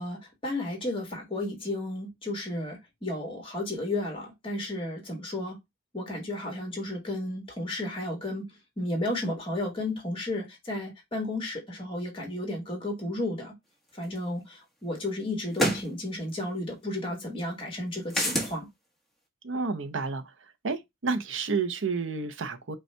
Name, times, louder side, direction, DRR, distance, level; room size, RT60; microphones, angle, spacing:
voice 1, 0.0-5.6 5.9-8.5 8.8-13.5 14.0-18.7, left 1 dB, 25° left, 1.8 m, -33 dB
sound 1, 14.1-14.2 15.5-15.9 18.1-18.5, equal, ahead, 1.1 m, -26 dB
voice 2, 19.4-20.2 20.6-22.8, right 4 dB, 75° right, 0.7 m, -30 dB
5.2 x 2.4 x 4.4 m
head